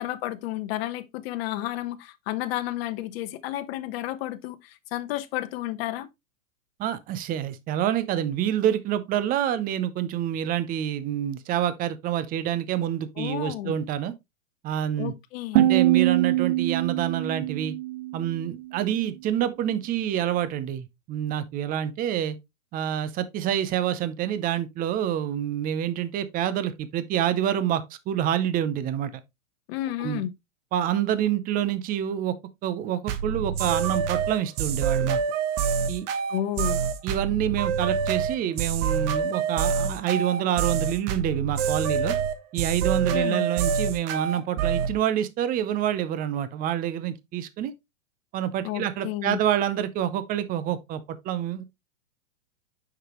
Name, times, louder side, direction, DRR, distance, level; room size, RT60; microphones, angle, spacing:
voice 1, 0.0-6.1 13.2-13.7 15.0-15.8 29.7-30.3 36.3-36.8 43.1-43.5 48.6-49.4, left 14 dB, 50° left, 1.0 m, -31 dB
voice 2, 6.8-14.1 14.6-15.1 15.5-17.7 18.1-22.4 22.7-29.1 30.0-30.2 30.7-32.4 32.6-35.2 35.9-36.1 37.0-42.2 42.5-47.7 48.3-51.6, right 10 dB, 20° right, 0.6 m, -27 dB
sound 1, 15.6-18.6, right 15 dB, 65° right, 0.7 m, -23 dB
sound 2, 33.1-44.9, right 7 dB, 40° right, 1.1 m, -26 dB
6.4 x 6.0 x 3.0 m
hypercardioid pair, 125°, 40 cm